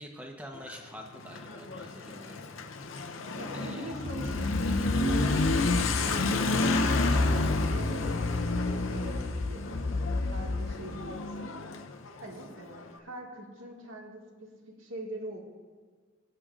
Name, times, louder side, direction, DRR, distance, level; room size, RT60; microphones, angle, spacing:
voice 1, 0.0-3.1 3.5-3.9, equal, 5° right, 1 dB, 1.0 m, -46 dB
Motorcycle / Accelerating revving vroom, 0.5-12.9, left 3 dB, 80° left, 0.7 m, -31 dB
voice 2, 3.4-7.1 7.6-9.8 10.1-11.6 12.2-14.5 14.8-15.4, right 1 dB, 85° right, -1 dB, 1.9 m, -43 dB
sound 1, 3.9-10.7, left 2 dB, 25° left, 0.3 m, -32 dB
20.0 x 7.7 x 2.5 m, 1.5 s
head